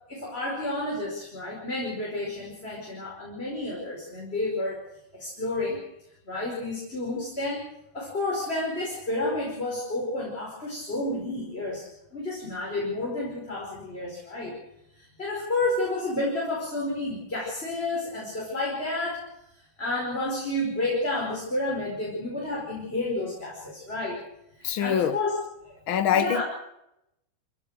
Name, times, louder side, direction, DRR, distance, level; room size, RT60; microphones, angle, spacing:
voice 1, 0.1-4.8 5.1-5.8 6.2-7.7 7.9-11.8 12.1-14.5 14.9-19.3 19.8-24.2 24.6-25.4 25.6-25.8 26.1-26.4, left 2 dB, 15° left, 4.9 m, -30 dB
voice 2, 24.6-25.2 25.9-26.4, left 9 dB, 70° left, 1.2 m, -24 dB
26.0 x 16.5 x 6.6 m
omnidirectional pair, 3.8 m